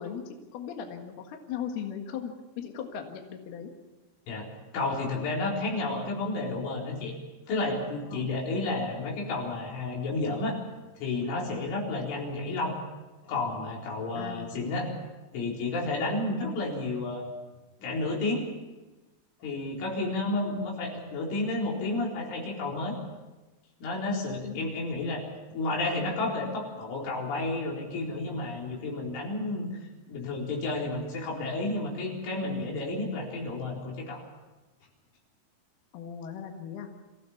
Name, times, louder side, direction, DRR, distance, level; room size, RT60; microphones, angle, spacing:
voice 1, 0.0-3.7 8.1-8.3 14.2-14.7 24.4-24.7 35.9-36.9, left 8 dB, 65° left, 3 dB, 3.4 m, -38 dB
voice 2, 4.7-7.1 7.5-10.6 11.0-12.8 13.2-14.9 15.3-17.3 17.8-18.5 19.4-23.0 23.8-25.2 25.5-29.7 30.1-34.2, left 2 dB, 90° left, -2 dB, 6.6 m, -31 dB
26.5 x 16.0 x 7.2 m, 1.1 s
omnidirectional pair, 5.4 m